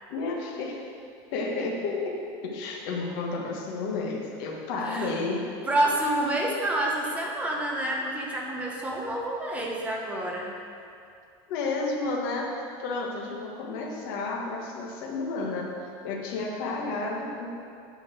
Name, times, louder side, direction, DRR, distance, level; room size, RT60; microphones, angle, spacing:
voice 1, 0.1-0.8 1.3-5.5 11.5-15.7 16.0-17.5, left 3 dB, 55° left, -1 dB, 1.5 m, -31 dB
voice 2, 4.9-5.2 5.7-10.5, right 1 dB, 10° right, -2 dB, 0.9 m, -28 dB
9.3 x 5.6 x 6.3 m, 2.4 s
supercardioid pair, 180°, 13 cm